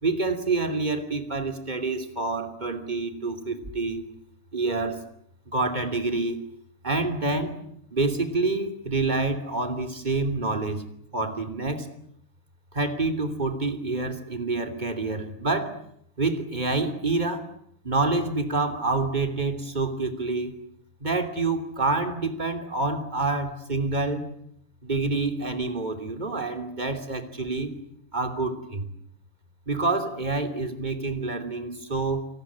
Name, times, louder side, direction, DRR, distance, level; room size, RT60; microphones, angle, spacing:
voice 1, 0.0-4.0 4.5-5.0 5.5-6.4 6.8-7.5 7.9-10.8 11.1-11.9 12.7-15.7 16.2-17.4 17.8-20.6 21.0-24.2 24.8-27.7 28.1-28.9 29.7-32.3, right 3 dB, 20° right, 7 dB, 3.1 m, -27 dB
27.5 x 19.5 x 9.8 m, 0.73 s
omnidirectional pair, 2.3 m